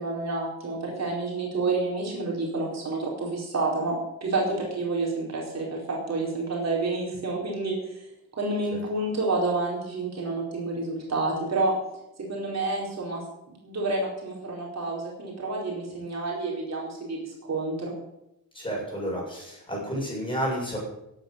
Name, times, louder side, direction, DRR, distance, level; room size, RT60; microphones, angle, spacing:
voice 1, 0.0-3.9 4.2-8.0 8.4-11.7 12.3-13.2 13.6-17.9, right 3 dB, 45° right, -3 dB, 4.7 m, -29 dB
voice 2, 18.5-20.8, equal, 15° left, -3 dB, 7.5 m, -31 dB
17.0 x 9.5 x 6.6 m, 0.87 s
wide cardioid pair, 155°, 36 cm